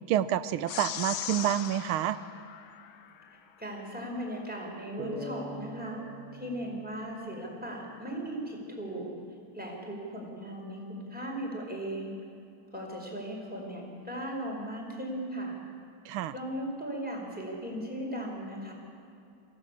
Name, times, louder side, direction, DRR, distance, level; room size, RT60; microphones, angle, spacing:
voice 1, 0.1-2.2 16.1-16.3, right 11 dB, 85° right, 15 dB, 1.6 m, -28 dB
sound 1, 0.7-3.3, left 9 dB, 80° left, 1.8 m, -39 dB
voice 2, 3.6-6.0 6.3-9.1 9.5-12.1 12.7-15.6 16.3-18.7, right 1 dB, 5° right, -2 dB, 4.9 m, -37 dB
sound 2, 5.0-8.4, right 1 dB, 50° right, 3.0 m, -43 dB
23.5 x 15.5 x 8.6 m, 2.6 s
omnidirectional pair, 2.3 m